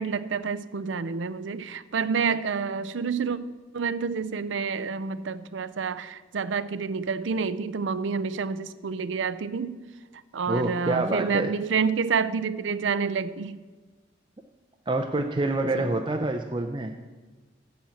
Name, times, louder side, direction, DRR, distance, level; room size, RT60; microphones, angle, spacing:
voice 1, 0.0-3.4 3.7-9.8 10.3-13.6 15.7-15.9, right 5 dB, 75° right, 14 dB, 0.5 m, -28 dB
voice 2, 10.5-11.5 14.9-16.9, right 2 dB, 25° right, 4 dB, 0.5 m, -27 dB
7.2 x 7.2 x 7.6 m, 1.3 s
head